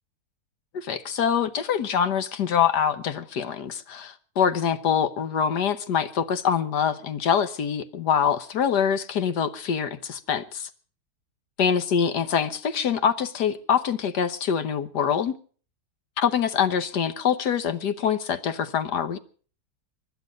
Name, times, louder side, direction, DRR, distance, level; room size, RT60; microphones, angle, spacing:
voice 1, 0.7-10.7 11.6-15.3 16.2-19.2, left 8 dB, 75° left, 1.6 m, -24 dB
24.5 x 11.0 x 5.2 m
omnidirectional pair, 1.8 m